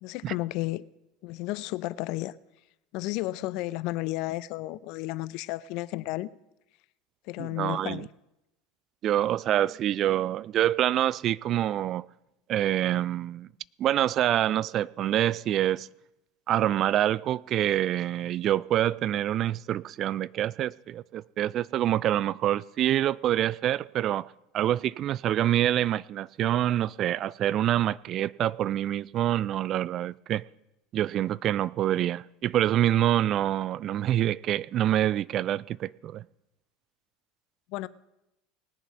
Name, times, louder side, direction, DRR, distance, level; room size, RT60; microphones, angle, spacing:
voice 1, 0.0-0.8 1.2-2.3 2.9-6.3 7.3-8.1 37.7-37.9, left 18 dB, 60° left, 0.5 m, -32 dB
voice 2, 7.4-8.1 9.0-12.1 12.5-13.5 13.8-15.9 16.5-30.4 30.9-36.2, right 12 dB, 45° right, 0.3 m, -26 dB
19.5 x 7.0 x 5.5 m
hypercardioid pair, 75°, 0 cm